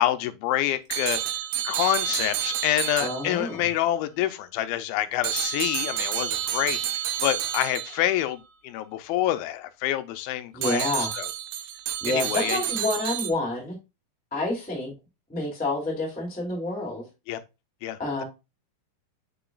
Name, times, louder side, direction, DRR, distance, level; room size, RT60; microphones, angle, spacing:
voice 1, 0.0-11.3 12.1-12.6 17.3-17.4 17.8-18.2, left 13 dB, 85° left, 2.5 m, -27 dB
sound 1, 0.9-3.7 5.2-8.2 10.6-13.3, right 11 dB, 75° right, 2.4 m, -30 dB
voice 2, 3.0-3.6 10.5-11.1 12.0-13.7 14.3-14.9 15.3-17.1 18.0-18.2, left 2 dB, 5° left, 2.0 m, -28 dB
7.0 x 6.0 x 2.3 m
omnidirectional pair, 4.3 m